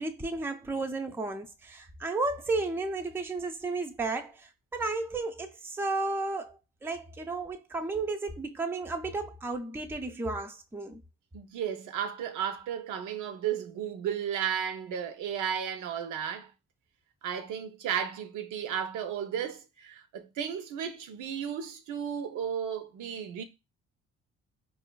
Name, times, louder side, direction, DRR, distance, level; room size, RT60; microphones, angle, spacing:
voice 1, 0.0-4.3 4.7-11.0, right 3 dB, 10° right, 0.4 m, -33 dB
voice 2, 11.3-16.5 17.2-23.4, right 8 dB, 80° right, 0.6 m, -34 dB
4.7 x 2.3 x 2.2 m
cardioid pair, 90°, 30 cm